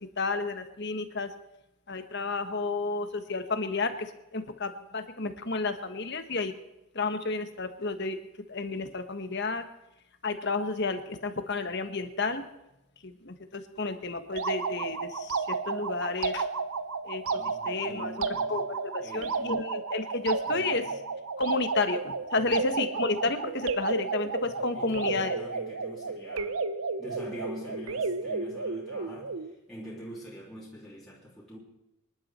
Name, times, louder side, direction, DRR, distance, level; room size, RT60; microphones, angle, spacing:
voice 1, 0.2-1.3 1.9-6.5 6.9-8.2 8.5-9.6 10.2-12.4 13.0-16.5 17.0-17.2 17.6-18.1 18.5-20.8 21.4-25.4, left 3 dB, 50° left, 8 dB, 1.4 m, -31 dB
sound 1, 14.3-29.5, right 4 dB, 70° right, 0.9 m, -32 dB
voice 2, 17.2-18.7 19.0-19.7 20.4-21.1 22.4-22.7 24.4-26.6 27.0-31.6, equal, ahead, -8 dB, 3.2 m, -45 dB
25.5 x 11.5 x 4.4 m, 0.90 s
head